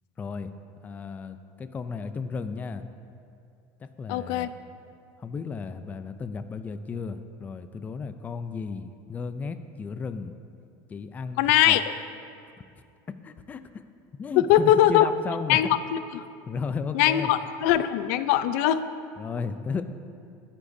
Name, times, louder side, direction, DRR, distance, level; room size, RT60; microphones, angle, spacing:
voice 1, 0.2-0.5 0.8-2.8 3.8-4.5 5.2-10.3 10.9-11.8 13.2-13.6 14.2-15.6 16.5-17.3 19.2-19.8, left 5 dB, 20° left, 10 dB, 0.4 m, -34 dB
voice 2, 4.1-4.5 11.4-11.8 14.4-15.1 15.5-16.2 16.9-18.8, left 12 dB, 80° left, 13 dB, 0.5 m, -21 dB
19.5 x 9.8 x 2.7 m, 2.5 s
cardioid pair, 150°, 9 cm